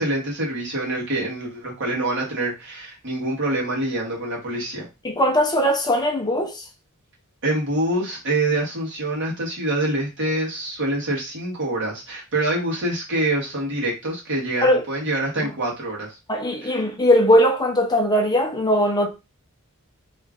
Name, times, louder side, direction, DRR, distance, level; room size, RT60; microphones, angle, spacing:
voice 1, 0.0-4.9 7.4-16.1 16.6-16.7, right 1 dB, 55° right, 1.5 m, -25 dB
voice 2, 5.0-6.6 14.6-14.8 15.4-15.5 16.3-19.1, equal, 20° left, 0.6 m, -19 dB
3.0 x 2.5 x 3.6 m
head